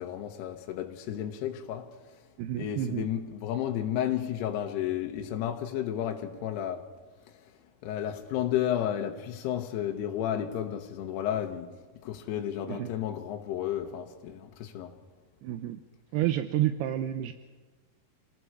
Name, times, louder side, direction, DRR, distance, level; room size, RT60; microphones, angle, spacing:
voice 1, 0.0-1.9 2.6-6.9 7.3-7.4 7.8-11.7 12.0-15.0, left 10 dB, 85° left, 3.1 m, -32 dB
voice 2, 2.4-3.1 12.7-12.9 15.4-15.8 16.1-17.3, right 12 dB, 80° right, 2.7 m, -29 dB
29.0 x 19.0 x 4.8 m
omnidirectional pair, 4.6 m